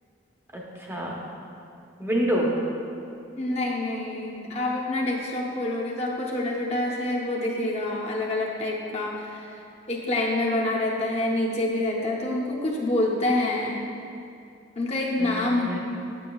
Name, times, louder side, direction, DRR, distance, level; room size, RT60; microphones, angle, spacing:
voice 1, 0.5-1.2 2.0-2.5 15.2-15.8, right 1 dB, 15° right, -3 dB, 0.7 m, -27 dB
voice 2, 3.4-9.5 9.9-13.8 14.8-15.8, left 1 dB, 35° left, -3 dB, 0.7 m, -27 dB
8.2 x 6.9 x 2.3 m, 2.5 s
head